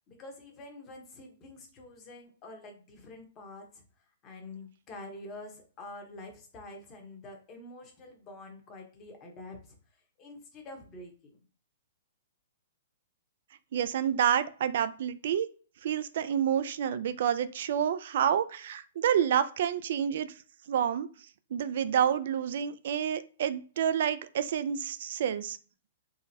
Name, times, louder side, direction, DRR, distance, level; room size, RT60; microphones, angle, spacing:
voice 1, 0.0-9.8 10.2-11.4, left 2 dB, 30° left, 3 dB, 1.1 m, -47 dB
voice 2, 13.7-15.5 15.8-20.3 20.7-21.1 21.5-25.6, right 9 dB, 60° right, 14 dB, 0.3 m, -28 dB
3.8 x 2.1 x 2.8 m, 0.39 s
hypercardioid pair, 125°, 0 cm